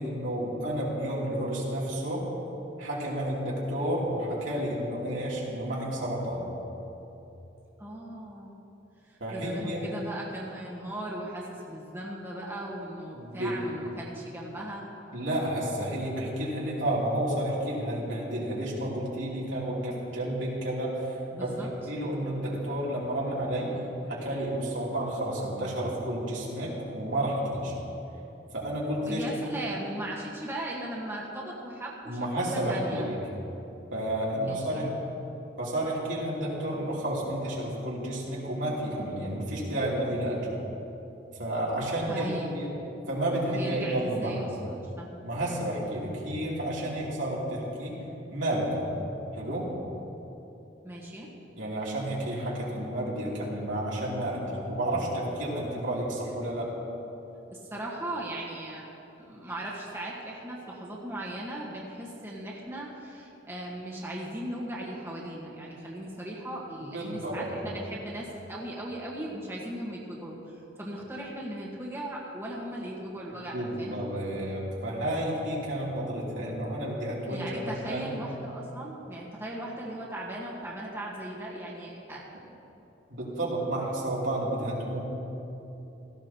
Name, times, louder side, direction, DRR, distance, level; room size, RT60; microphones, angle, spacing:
voice 1, 0.0-2.2 2.8-6.4 9.2-9.8 13.1-13.6 15.1-21.1 21.4-23.8 24.1-27.7 28.5-29.2 32.1-33.2 33.9-34.9 35.6-40.5 41.4-42.7 43.1-44.4 45.2-48.0 48.3-48.9 49.3-49.7 51.5-56.7 66.9-67.5 73.5-78.1 83.1-85.0, right 1 dB, 85° right, -6 dB, 3.1 m, -31 dB
voice 2, 7.8-8.6 9.1-14.8 21.3-21.7 29.1-33.1 34.4-34.9 42.1-42.4 43.3-45.1 50.8-51.3 57.5-58.9 59.1-74.0 77.3-82.2, right 1 dB, 15° right, -4 dB, 1.4 m, -38 dB
17.0 x 14.0 x 2.9 m, 3.0 s
head